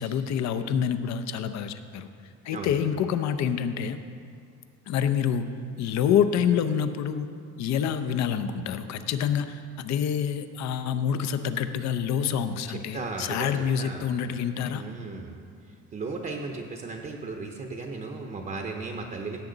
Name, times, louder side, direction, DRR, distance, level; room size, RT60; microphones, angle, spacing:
voice 1, 0.0-2.1 2.4-4.0 4.9-5.5 5.8-7.3 7.6-14.8, left 8 dB, 65° left, 10 dB, 0.7 m, -27 dB
voice 2, 12.7-14.1 14.7-15.4 15.9-19.4, right 3 dB, 30° right, 2 dB, 0.7 m, -35 dB
17.0 x 7.3 x 3.9 m, 2.3 s
cardioid pair, 140°, 30 cm